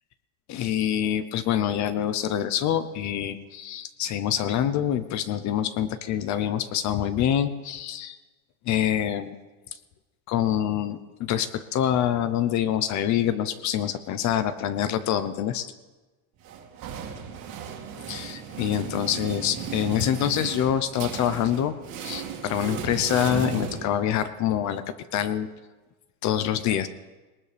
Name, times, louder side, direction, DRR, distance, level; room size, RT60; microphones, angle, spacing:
voice 1, 0.5-8.2 8.7-9.3 10.3-15.7 18.1-24.8 25.1-25.5 26.2-26.9, left 10 dB, 40° left, 12 dB, 0.8 m, -26 dB
sound 1, 16.4-24.4, right 6 dB, 50° right, 2.3 m, -35 dB
19.5 x 19.5 x 3.4 m, 1.2 s
supercardioid pair, 140°, 43 cm